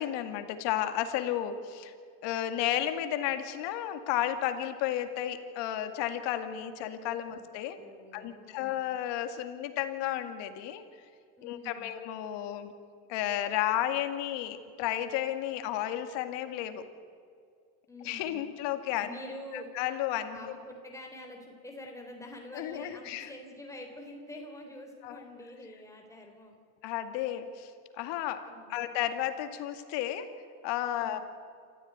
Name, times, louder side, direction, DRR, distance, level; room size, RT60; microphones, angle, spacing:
voice 1, 0.0-1.9 2.2-7.8 8.1-10.8 11.4-12.7 13.1-16.8 18.0-19.1 19.5-20.6 22.5-23.3 25.0-25.2 26.8-27.7 28.0-30.3 30.6-31.2, left 12 dB, 75° left, 8 dB, 2.2 m, -33 dB
voice 2, 7.8-8.8 11.4-12.0 17.9-18.4 19.0-19.7 20.3-26.6 28.5-28.9 31.0-31.2, left 1 dB, 5° left, 1 dB, 3.8 m, -46 dB
27.5 x 14.0 x 9.6 m, 2.2 s
supercardioid pair, 85°, 43 cm